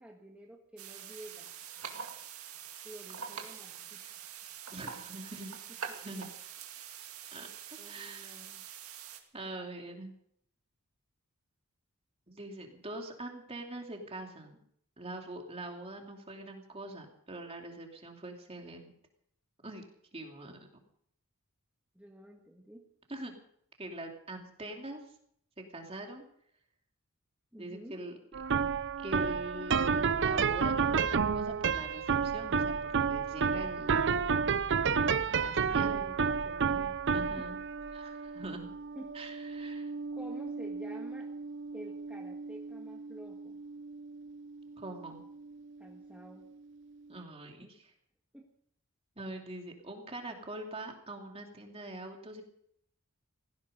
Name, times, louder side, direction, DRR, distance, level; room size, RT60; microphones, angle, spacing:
voice 1, 0.0-1.5 2.8-4.0 4.8-4.9 5.9-6.0 7.8-8.6 21.9-22.8 27.5-27.9 35.7-37.0 37.3-37.5 38.9-39.2 40.1-41.3 41.7-43.6 45.8-46.5 48.3-48.5, right 1 dB, 5° right, -1 dB, 1.6 m, -50 dB
sound 1, 0.8-9.2, right 7 dB, 70° right, 2.1 m, -45 dB
voice 2, 4.7-5.5 6.0-6.3 7.3-7.5 7.8-8.4 9.3-10.1 12.3-14.6 15.0-18.9 19.6-19.8 20.1-20.6 23.1-23.3 23.8-25.1 25.6-26.2 27.6-28.1 29.0-34.1 35.3-36.0 37.1-37.6 37.9-38.7 39.1-39.9 44.8-45.2 47.1-47.9 49.2-52.4, right 2 dB, 25° right, 2 dB, 2.7 m, -43 dB
sound 2, 28.3-45.5, right 6 dB, 55° right, 0.6 m, -32 dB
18.0 x 15.0 x 5.3 m, 0.68 s
head